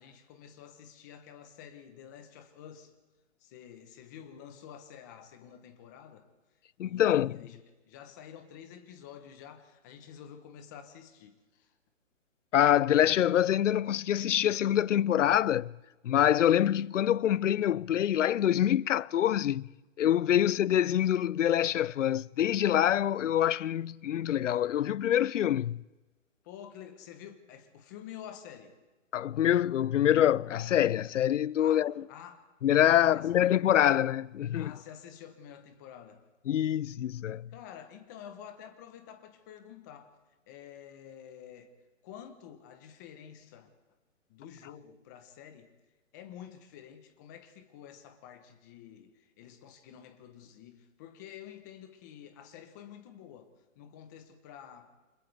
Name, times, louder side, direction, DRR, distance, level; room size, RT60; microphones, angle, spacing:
voice 1, 0.0-2.9 3.4-6.3 6.8-11.7 26.4-28.7 31.6-32.5 32.9-33.3 34.5-36.2 37.5-40.1 40.5-41.7 42.0-43.7 44.3-45.7 46.1-54.9, left 9 dB, 15° left, 0.9 m, -49 dB
voice 2, 6.8-7.4 12.5-15.7 16.0-19.7 20.0-25.8 29.1-32.0 32.6-34.7 36.5-37.5, left 11 dB, 65° left, 0.5 m, -25 dB
29.5 x 26.0 x 3.4 m
hypercardioid pair, 165°, 39 cm